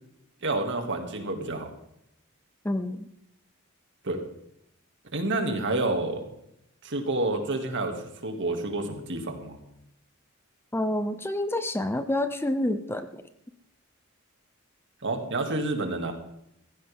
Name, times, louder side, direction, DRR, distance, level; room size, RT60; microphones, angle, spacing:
voice 1, 0.4-1.7 4.0-4.2 5.1-6.3 6.8-8.0 8.2-9.6 15.0-16.1, right 2 dB, 60° right, 4 dB, 2.5 m, -29 dB
voice 2, 2.6-3.0 10.7-13.2, left 1 dB, 10° left, 10 dB, 0.7 m, -28 dB
15.5 x 15.5 x 3.7 m, 0.81 s
head